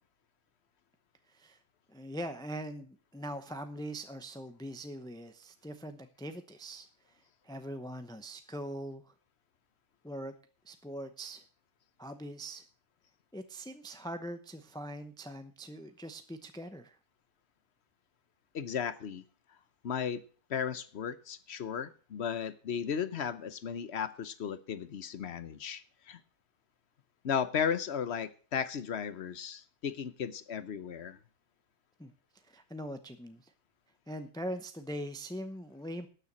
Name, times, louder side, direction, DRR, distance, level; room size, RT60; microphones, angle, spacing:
voice 1, 1.3-1.6 1.9-9.1 10.0-10.3 10.6-11.4 12.0-12.6 13.3-17.0 32.0-32.1 32.4-33.5 34.1-36.1, equal, 5° left, 0.4 m, -42 dB
voice 2, 18.5-19.2 19.8-20.2 20.5-26.2 27.2-31.2, left 7 dB, 50° left, 0.9 m, -35 dB
12.5 x 6.9 x 7.4 m
omnidirectional pair, 1.7 m